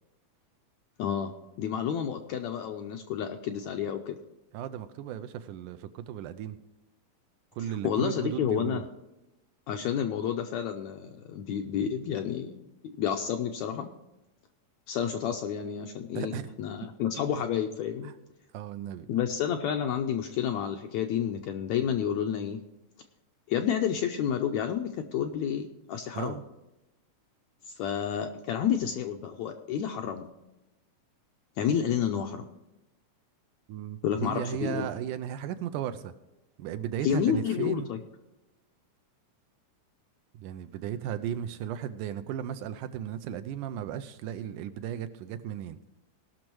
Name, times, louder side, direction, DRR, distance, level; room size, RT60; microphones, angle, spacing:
voice 1, 1.0-4.1 7.8-8.8 9.7-12.5 13.0-13.9 14.9-18.1 19.1-22.6 23.5-26.4 27.7-30.3 31.6-32.4 34.0-34.9 37.0-38.0, left 8 dB, 75° left, 5 dB, 1.7 m, -30 dB
voice 2, 4.5-6.6 7.5-8.9 16.2-16.5 18.0-18.1 18.5-19.1 26.1-26.4 33.7-36.1 36.6-37.9 40.3-45.8, right 10 dB, 80° right, 10 dB, 2.0 m, -35 dB
18.5 x 6.2 x 4.6 m, 0.96 s
omnidirectional pair, 3.9 m